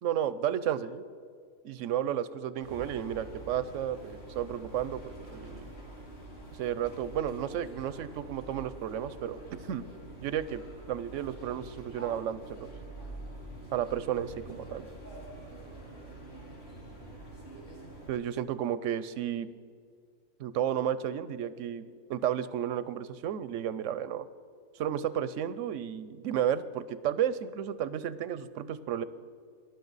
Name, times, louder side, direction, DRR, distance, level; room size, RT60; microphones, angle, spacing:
voice 1, 0.0-1.0 1.6-5.6 6.5-9.4 9.7-9.8 10.2-10.6 10.9-12.7 13.7-14.9 18.1-19.5 20.4-24.3 24.8-29.0, right 10 dB, 65° right, 15 dB, 0.8 m, -32 dB
sound 1, 2.6-18.1, right 1 dB, 50° left, 4.9 m, -46 dB
18.5 x 11.5 x 4.0 m, 2.2 s
omnidirectional pair, 1.6 m